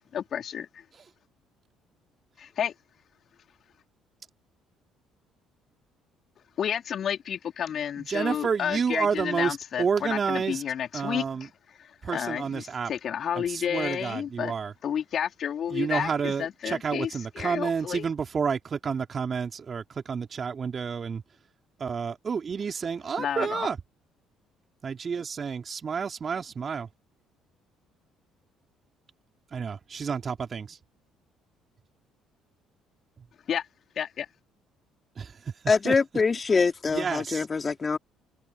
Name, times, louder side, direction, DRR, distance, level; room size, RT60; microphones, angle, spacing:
voice 1, 0.1-0.7 2.4-2.7 6.6-11.5 12.1-14.5 14.8-17.1 17.3-18.1 23.2-23.7 33.5-33.6 34.0-34.3, left 9 dB, 50° left, 4.6 m, -31 dB
voice 2, 8.0-10.6 10.9-11.5 12.0-12.9 13.4-14.7 15.7-21.2 21.8-23.8 24.8-26.9 29.5-30.8 35.2-35.3 35.8-36.0 36.9-37.4, right 6 dB, 40° right, 3.8 m, -30 dB
voice 3, 35.7-38.0, left 4 dB, 30° left, 4.9 m, -24 dB
hypercardioid pair, 50°, 0 cm